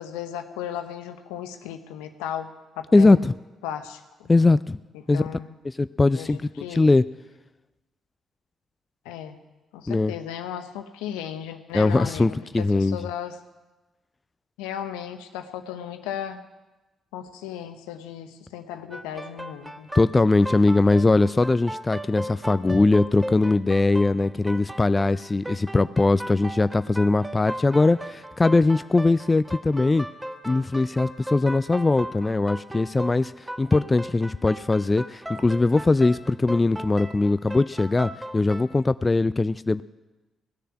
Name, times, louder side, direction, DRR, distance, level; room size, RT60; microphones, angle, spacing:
voice 1, 0.0-2.5 2.8-3.2 3.6-4.3 5.1-5.5 6.1-7.0 9.0-9.4 9.7-13.4 14.6-16.4 17.1-19.9, left 10 dB, 80° left, 9 dB, 0.8 m, -35 dB
voice 2, 2.9-3.3 4.3-4.8 5.1-5.2 5.6-7.0 9.9-10.1 11.7-13.0 19.9-30.1 30.4-39.8, left 3 dB, 25° left, 15 dB, 0.4 m, -21 dB
sound 1, 18.9-38.7, right 1 dB, 10° right, 1.4 m, -37 dB
18.5 x 6.7 x 9.7 m, 1.1 s
hypercardioid pair, 40°, 0 cm